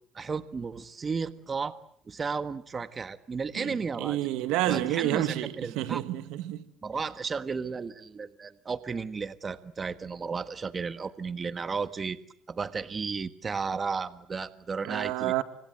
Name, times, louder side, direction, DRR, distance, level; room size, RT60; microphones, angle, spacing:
voice 1, 0.1-1.8 2.1-4.2 4.7-6.0 6.8-12.2 12.5-15.4, right 5 dB, 30° right, 1.5 m, -33 dB
voice 2, 3.6-6.7 14.8-15.4, right 14 dB, 85° right, 1.9 m, -29 dB
29.0 x 25.5 x 8.0 m
cardioid pair, 115°, 0 cm